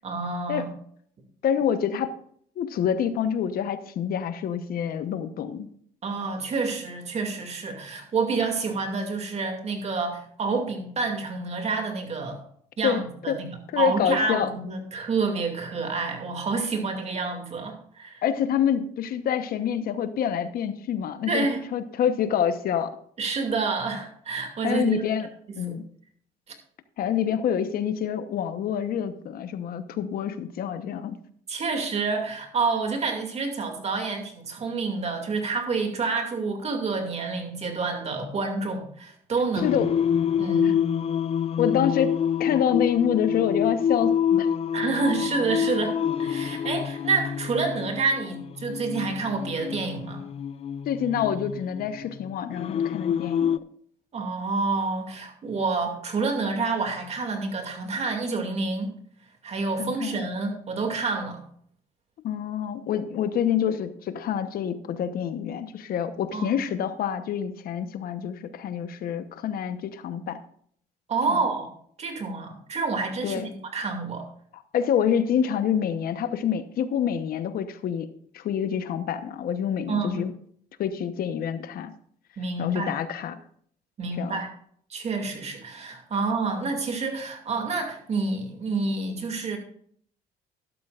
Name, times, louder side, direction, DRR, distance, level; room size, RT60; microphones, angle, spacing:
voice 1, 0.0-0.7 6.0-12.4 12.8-13.5 13.8-18.2 21.3-21.7 23.2-25.0 25.7-25.8 31.5-39.9 40.3-40.8 44.7-50.2 54.1-58.9 59.4-61.4 66.1-66.6 71.1-71.7 72.0-73.4 73.7-74.2 79.9-80.3 82.4-82.9 84.0-84.5 84.9-89.6, right 4 dB, 40° right, 4 dB, 2.4 m, -28 dB
voice 2, 1.4-2.1 2.6-5.7 12.8-13.4 13.7-14.5 18.2-21.5 21.7-22.9 24.6-25.3 25.6-25.8 27.0-31.2 39.6-39.9 40.6-40.7 41.6-44.5 50.9-53.5 59.8-60.3 62.2-70.4 71.3-71.4 73.2-73.5 74.7-78.1 78.3-80.3 80.8-81.9 82.6-83.4 84.2-84.4, left 8 dB, 60° left, 11 dB, 1.0 m, -27 dB
Singing, 39.6-53.6, left 8 dB, 35° left, 0.4 m, -27 dB
12.0 x 12.0 x 2.5 m, 0.62 s
cardioid pair, 110°, 17 cm